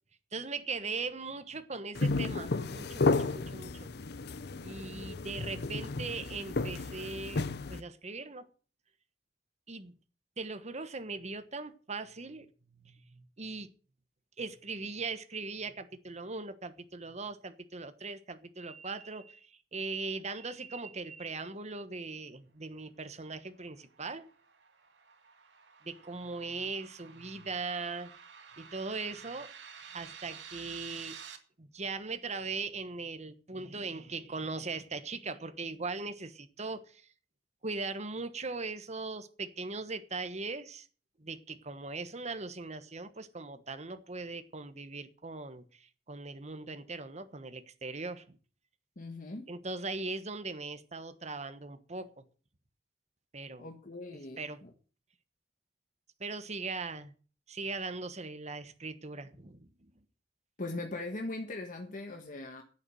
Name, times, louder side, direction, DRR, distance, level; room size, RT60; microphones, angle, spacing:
voice 1, 0.3-3.9 4.6-8.5 9.7-9.9 10.4-12.5 12.7-13.7 14.4-24.3 25.8-28.1 28.6-29.5 29.9-31.2 31.6-37.0 37.6-40.9 41.2-48.4 49.5-52.2 53.3-53.7 54.4-54.6 56.2-57.1 57.5-59.7, right 3 dB, 40° right, 1.3 m, -39 dB
sound 1, 1.9-7.8, left 3 dB, 65° left, 0.7 m, -33 dB
sound 2, 23.6-31.4, right 7 dB, 85° right, 2.1 m, -51 dB
voice 2, 49.0-49.5 53.6-54.7 60.6-62.6, left 2 dB, 50° left, 1.5 m, -40 dB
10.5 x 8.4 x 9.0 m
head